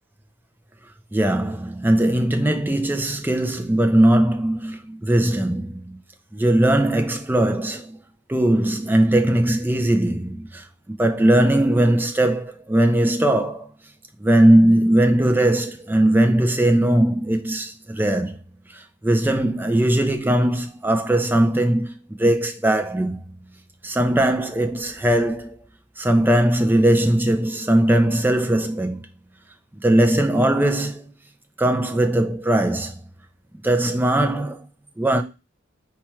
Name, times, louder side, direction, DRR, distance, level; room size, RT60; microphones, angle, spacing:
voice 1, 1.1-6.0 6.3-8.0 8.3-13.7 14.2-18.4 18.7-23.2 23.8-25.6 26.0-29.1 29.8-31.1 31.6-33.0 33.6-34.7 35.0-35.2, right 1 dB, 10° right, 0.4 m, -19 dB
4.4 x 2.3 x 4.4 m
head